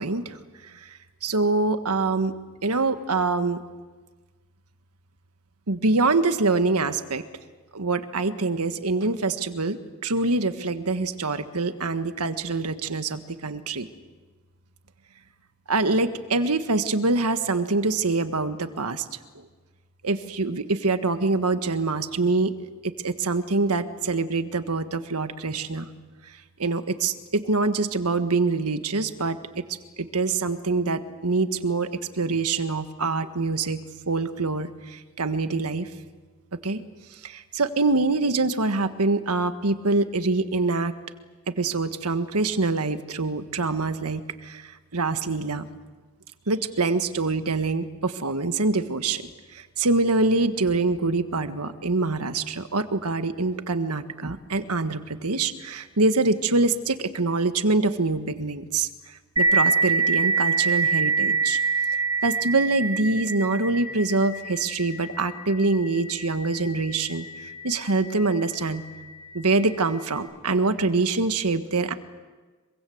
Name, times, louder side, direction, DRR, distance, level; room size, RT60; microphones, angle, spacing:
voice 1, 0.0-2.3 2.6-3.6 5.7-7.2 7.7-9.8 10.0-13.9 15.7-19.0 20.0-22.5 22.8-25.9 26.3-29.6 30.0-31.9 32.1-35.9 36.5-36.8 37.1-40.9 41.5-45.7 46.5-61.6 62.2-68.9 69.3-71.9, right 3 dB, 85° right, 9 dB, 1.5 m, -25 dB
sound 1, 59.4-68.6, right 4 dB, 20° right, 6.5 m, -26 dB
25.5 x 23.5 x 7.9 m, 1.4 s
head